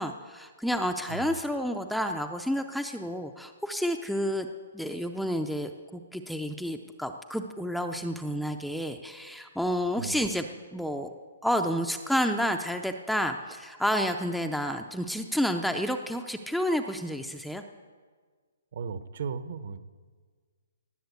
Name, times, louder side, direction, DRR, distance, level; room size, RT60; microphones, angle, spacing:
voice 1, 0.0-4.5 4.7-10.5 10.7-11.1 11.4-17.6, equal, ahead, 4 dB, 0.4 m, -30 dB
voice 2, 18.7-19.8, right 5 dB, 50° right, 12 dB, 0.8 m, -36 dB
18.5 x 7.4 x 8.2 m, 1.5 s
hypercardioid pair, 170°, 0 cm